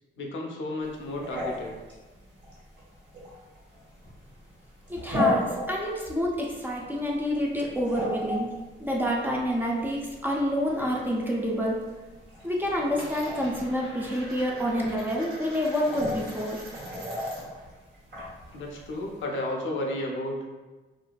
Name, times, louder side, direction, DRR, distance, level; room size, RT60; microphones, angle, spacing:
voice 1, 0.2-1.8 14.5-14.6 16.1-16.2 18.5-20.4, left 1 dB, 70° left, 0 dB, 0.5 m, -33 dB
sound 1, 0.8-19.2, left 1 dB, 60° right, 1.3 m, -36 dB
voice 2, 4.9-8.5 8.8-11.8 12.4-16.6, equal, 10° right, -3 dB, 0.4 m, -28 dB
Coin (dropping), 10.1-11.3 11.6-12.1 12.3-17.6 17.9-19.6, right 1 dB, 90° right, 0.8 m, -46 dB
2.6 x 2.4 x 2.2 m, 1.2 s
cardioid pair, 90°, 21 cm